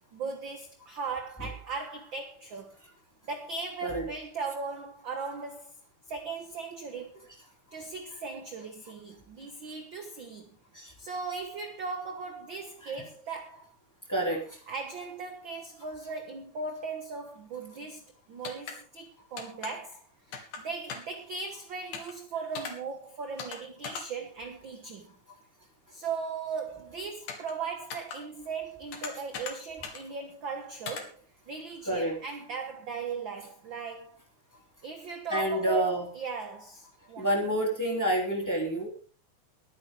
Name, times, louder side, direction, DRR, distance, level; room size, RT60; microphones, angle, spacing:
voice 1, 0.1-2.8 3.3-5.7 6.1-7.3 7.7-10.5 11.0-13.7 14.7-25.1 25.9-31.2 31.5-34.2 34.8-37.3, right 5 dB, 50° right, 1.6 m, -38 dB
voice 2, 14.1-14.4 31.9-32.2 35.3-36.0 37.2-38.9, right 1 dB, 5° left, 3.0 m, -28 dB
sound 1, 18.4-18.8 19.4-19.7 20.3-20.6 20.9-21.2 21.9-22.1 22.6-22.7 23.4-23.6 23.8-24.0 27.3-27.5 27.9-28.2 28.9-29.5 29.8-30.0 30.9-31.0, left 5 dB, 90° left, 3.5 m, -38 dB
21.5 x 9.3 x 3.7 m
omnidirectional pair, 3.5 m